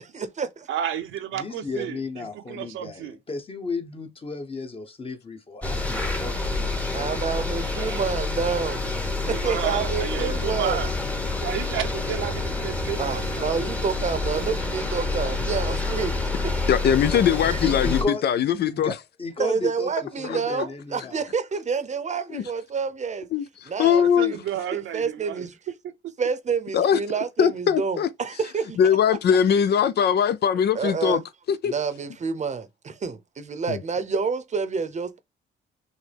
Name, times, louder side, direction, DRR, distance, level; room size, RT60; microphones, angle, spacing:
voice 1, 0.1-0.7 6.9-8.9 9.2-10.8 13.0-16.2 16.7-16.8 17.5-17.6 19.4-23.3 23.7-24.4 24.7-25.6 26.2-28.8 29.1-29.2 30.7-31.2 31.6-35.2, right 5 dB, 35° right, 0.8 m, -28 dB
voice 2, 0.7-3.2 7.6-8.0 9.2-10.9 11.4-13.6 14.3-14.5 24.0-25.5, right 10 dB, 80° right, 0.8 m, -32 dB
voice 3, 1.4-8.0 17.6-18.2 18.6-19.9 20.2-21.2, left 3 dB, 30° left, 1.1 m, -34 dB
sound 1, 5.6-18.0, left 3 dB, 5° left, 1.0 m, -28 dB
voice 4, 16.7-18.9 20.2-20.4 22.3-22.4 23.3-24.4 26.7-27.0 27.4-28.1 28.8-31.2 31.5-31.7 33.7-33.8, left 8 dB, 55° left, 0.5 m, -21 dB
6.3 x 2.2 x 3.4 m
cardioid pair, 90°, 20 cm